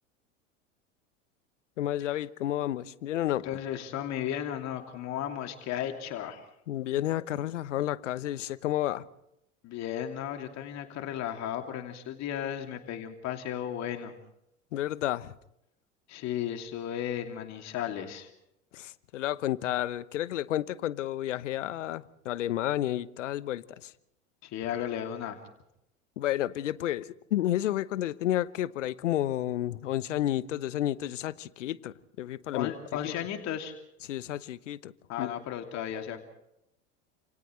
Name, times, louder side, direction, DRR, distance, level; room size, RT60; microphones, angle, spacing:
voice 1, 1.8-3.5 6.7-9.0 14.7-15.3 18.7-23.9 26.2-32.7 33.0-33.1 34.0-34.9 35.2-35.3, left 13 dB, 70° left, 1.1 m, -31 dB
voice 2, 3.4-6.4 9.6-14.2 16.1-18.3 24.4-25.4 32.5-33.7 35.1-36.2, left 10 dB, 45° left, 2.8 m, -35 dB
30.0 x 28.0 x 3.3 m
figure-of-eight pair, 80°, 38 cm